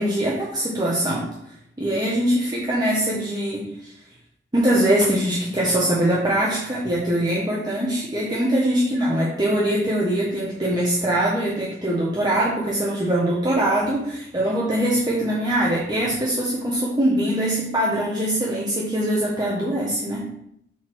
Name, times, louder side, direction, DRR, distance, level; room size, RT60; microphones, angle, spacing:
voice 1, 0.0-3.9 4.5-20.3, right 1 dB, 25° right, -6 dB, 1.2 m, -22 dB
7.3 x 4.2 x 6.1 m, 0.75 s
head